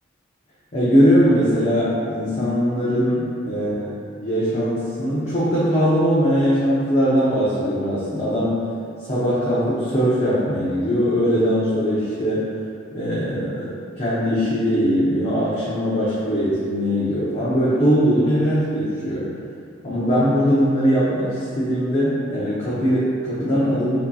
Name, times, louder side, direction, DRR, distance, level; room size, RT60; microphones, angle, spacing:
voice 1, 0.7-3.9 4.2-8.5 9.1-12.4 12.9-19.3 19.8-24.0, equal, 30° left, -10 dB, 0.7 m, -20 dB
6.3 x 2.8 x 2.3 m, 2.4 s
head